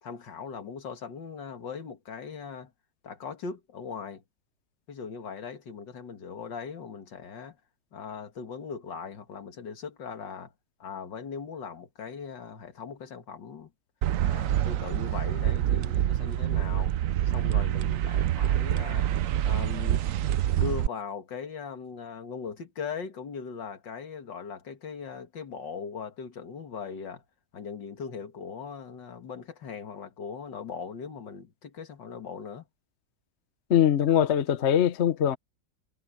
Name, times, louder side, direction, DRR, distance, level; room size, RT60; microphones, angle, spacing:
voice 1, 0.0-2.7 3.0-4.2 4.9-7.6 7.9-10.5 10.8-13.7 14.2-16.9 17.3-19.1 19.4-20.0 20.5-27.2 27.5-32.6, left 6 dB, 75° left, 2.5 m, -39 dB
sound 1, 14.0-20.9, right 11 dB, 65° right, 0.8 m, -26 dB
voice 2, 33.7-35.4, left 10 dB, 45° left, 1.0 m, -22 dB
omnidirectional pair, 1.9 m